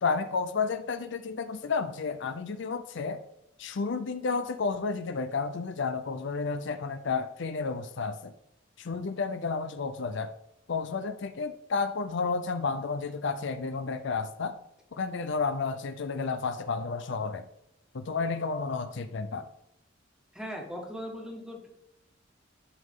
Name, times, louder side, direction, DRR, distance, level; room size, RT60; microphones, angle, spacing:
voice 1, 0.0-3.2 3.6-8.3 8.8-10.3 10.7-14.5 14.9-17.4 17.9-19.5, left 4 dB, 65° left, 9 dB, 0.5 m, -31 dB
voice 2, 20.3-21.7, equal, 5° right, 0 dB, 1.6 m, -39 dB
11.5 x 5.4 x 3.7 m, 0.83 s
head